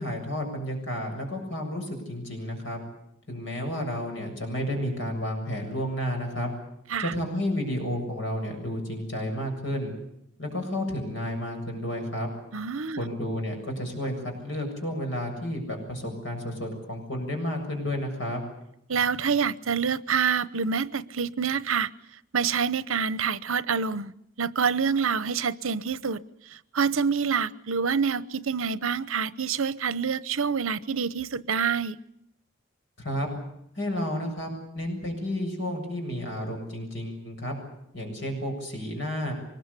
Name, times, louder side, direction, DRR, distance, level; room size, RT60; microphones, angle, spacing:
voice 1, 0.0-2.8 3.3-6.5 7.0-9.9 10.4-12.3 13.0-18.4 33.0-33.3 33.8-37.5 37.9-39.3, left 1 dB, 65° left, 3 dB, 7.4 m, -31 dB
voice 2, 12.5-13.1 18.9-21.9 22.3-24.1 24.4-26.2 26.5-32.0, right 6 dB, 85° right, 17 dB, 0.9 m, -27 dB
24.0 x 21.0 x 8.4 m, 0.78 s
head